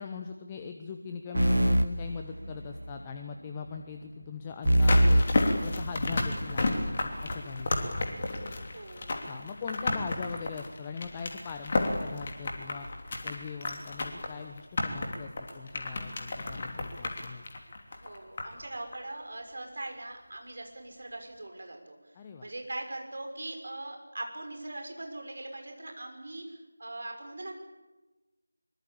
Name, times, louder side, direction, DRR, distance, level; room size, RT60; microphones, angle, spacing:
voice 1, 0.0-5.2 5.6-8.1 9.3-12.9 13.2-17.4 22.1-22.5, left 5 dB, 15° left, 6 dB, 1.0 m, -40 dB
sound 1, 1.3-3.0 4.6-6.4, right 1 dB, 80° right, 1.5 m, -25 dB
sound 2, 4.6-18.6 18.9-19.0, left 2 dB, 30° left, 3.1 m, -32 dB
voice 2, 8.7-9.1 17.9-22.1 22.4-27.6, right 2 dB, 50° right, 4 dB, 6.0 m, -41 dB
24.0 x 22.5 x 8.7 m, 1.1 s
figure-of-eight pair, 165°, 0 cm